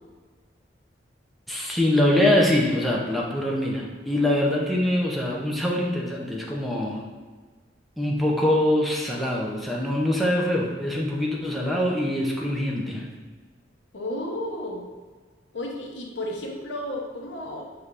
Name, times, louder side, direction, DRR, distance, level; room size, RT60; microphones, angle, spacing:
voice 1, 1.5-7.1 8.0-13.1, left 1 dB, ahead, -3 dB, 0.5 m, -24 dB
voice 2, 13.9-14.8 15.5-17.7, left 1 dB, 80° left, 0 dB, 0.8 m, -32 dB
5.6 x 3.3 x 2.5 m, 1.4 s
head